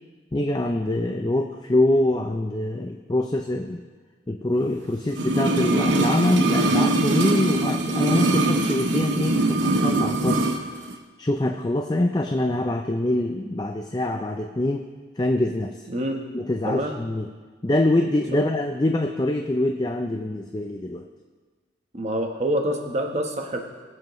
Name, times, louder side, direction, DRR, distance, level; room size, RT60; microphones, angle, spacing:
voice 1, 0.3-3.8 4.3-10.4 11.2-14.9 15.2-15.8 16.3-17.3 17.6-21.1, left 1 dB, 20° left, 3 dB, 0.5 m, -24 dB
sound 1, 5.1-10.6 10.9-11.0, right 2 dB, 85° right, 0.8 m, -22 dB
voice 2, 15.9-16.2 16.6-17.0 18.3-18.4 21.9-23.6, right 1 dB, 35° right, 2 dB, 1.1 m, -26 dB
21.0 x 7.6 x 3.1 m, 1.4 s
head